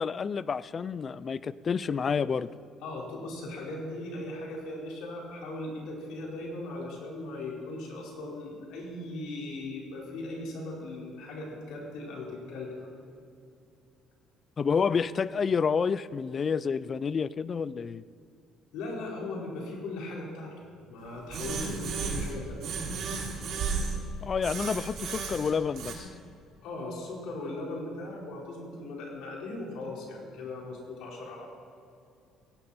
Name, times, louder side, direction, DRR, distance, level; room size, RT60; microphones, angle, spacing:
voice 1, 0.0-2.5 14.6-18.0 24.2-26.1, left 6 dB, 30° left, 18 dB, 0.4 m, -29 dB
voice 2, 2.8-12.9 18.7-22.7 26.6-31.5, left 2 dB, 80° left, -2 dB, 4.5 m, -38 dB
sound 1, 21.3-22.3 22.6-24.0 24.4-25.9, right 5 dB, 60° right, 3.5 m, -33 dB
18.0 x 17.0 x 4.4 m, 2.5 s
cardioid pair, 145°, 0 cm